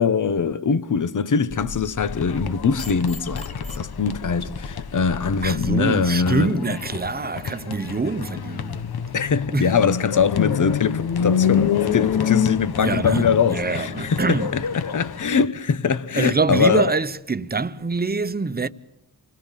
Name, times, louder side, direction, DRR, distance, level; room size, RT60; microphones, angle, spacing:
voice 1, 0.0-6.8 9.1-16.9, left 6 dB, 55° left, 1.1 m, -22 dB
sound 1, 1.5-5.8, left 3 dB, 20° left, 2.7 m, -36 dB
sound 2, 2.0-15.5, left 8 dB, 80° left, 1.2 m, -27 dB
voice 2, 5.4-8.8 9.5-9.8 12.8-14.6 16.2-18.7, right 4 dB, 25° right, 1.0 m, -25 dB
28.0 x 20.0 x 7.5 m
wide cardioid pair, 135°, 37 cm